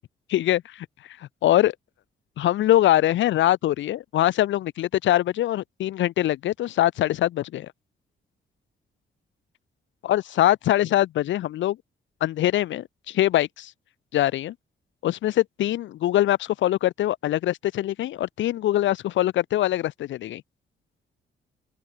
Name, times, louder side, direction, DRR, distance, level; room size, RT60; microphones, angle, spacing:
voice 1, 0.3-0.9 1.4-1.7 2.4-7.7 10.0-11.8 12.2-13.7 14.1-14.5 15.0-20.4, left 13 dB, 65° left, 0.4 m, -23 dB
open air
cardioid pair, 70°, 21 cm